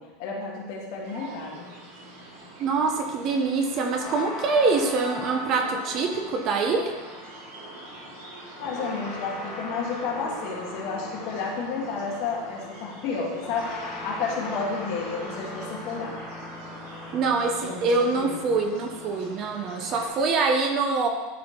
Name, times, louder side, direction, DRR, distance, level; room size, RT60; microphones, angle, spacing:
voice 1, 0.0-1.7 8.6-16.2 17.6-18.5, left 4 dB, 50° left, -2 dB, 1.8 m, -31 dB
sound 1, 1.0-20.3, right 2 dB, 60° right, 2.8 m, -45 dB
voice 2, 2.6-6.9 17.1-21.1, right 4 dB, 30° right, 4 dB, 0.7 m, -24 dB
sound 2, 4.0-20.1, left 2 dB, 25° left, 1.3 m, -40 dB
11.5 x 4.1 x 4.4 m, 1.2 s
supercardioid pair, 175°, 0 cm